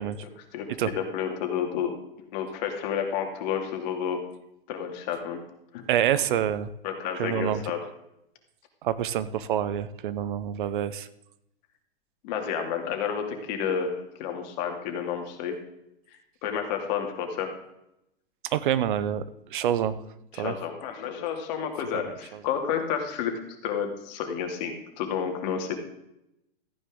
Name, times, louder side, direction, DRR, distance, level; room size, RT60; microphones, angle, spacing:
voice 1, 0.0-1.9 2.3-4.2 4.7-5.4 5.7-5.9 6.8-7.8 12.2-15.5 16.4-17.5 20.3-23.3 23.6-25.8, left 7 dB, 45° left, 4 dB, 2.6 m, -30 dB
voice 2, 5.9-6.7 7.2-7.6 8.8-11.1 18.4-19.2 19.5-20.0 20.3-20.5 21.9-22.4, right 10 dB, 60° right, 15 dB, 0.9 m, -27 dB
14.0 x 9.6 x 3.8 m, 0.83 s
hypercardioid pair, 115°, 29 cm